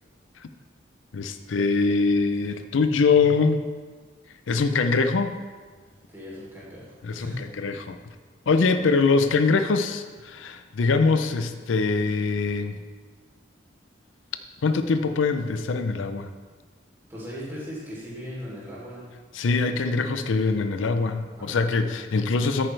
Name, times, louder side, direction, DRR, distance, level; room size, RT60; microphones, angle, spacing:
voice 1, 1.1-3.6 4.5-5.3 7.0-8.0 8.5-12.8 14.6-16.3 19.4-22.7, left 4 dB, 85° left, 9 dB, 0.5 m, -23 dB
voice 2, 5.7-7.5 17.1-19.0 21.3-21.7, equal, 10° right, -8 dB, 3.1 m, -39 dB
10.0 x 9.0 x 3.3 m, 1.4 s
head